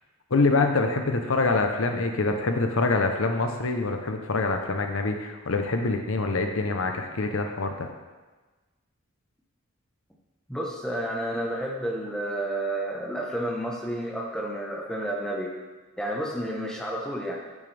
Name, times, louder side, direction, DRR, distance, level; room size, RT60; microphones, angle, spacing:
voice 1, 0.3-7.9, left 3 dB, 70° left, 5 dB, 0.8 m, -25 dB
voice 2, 10.5-15.5 16.0-17.4, right 1 dB, 5° left, -1 dB, 1.0 m, -30 dB
9.9 x 7.2 x 3.4 m, 1.2 s
head